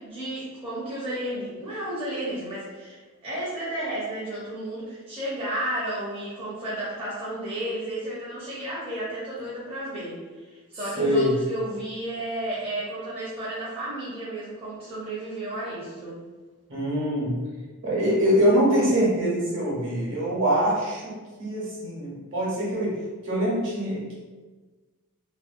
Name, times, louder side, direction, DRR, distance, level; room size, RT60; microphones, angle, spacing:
voice 1, 0.0-16.2, right 1 dB, 25° right, -9 dB, 0.6 m, -33 dB
voice 2, 11.0-11.3 16.7-17.4 17.8-23.0 23.2-24.1, equal, 60° right, -6 dB, 0.9 m, -24 dB
2.5 x 2.1 x 2.5 m, 1.3 s
head